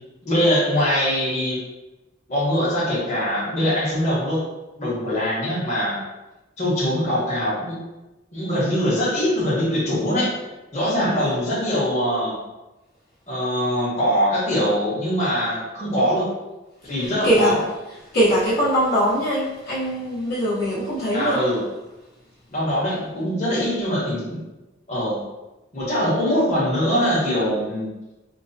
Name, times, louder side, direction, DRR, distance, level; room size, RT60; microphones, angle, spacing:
voice 1, 0.2-1.6 2.3-4.4 4.8-6.0 6.6-7.8 8.3-10.3 10.7-12.4 13.3-16.3 16.9-17.6 21.1-21.6 22.5-24.4 24.9-25.2 25.7-27.9, equal, 40° left, -8 dB, 1.2 m, -22 dB
voice 2, 16.8-17.6 18.0-21.4, equal, 55° left, -10 dB, 1.1 m, -22 dB
4.4 x 2.1 x 2.7 m, 1.0 s
head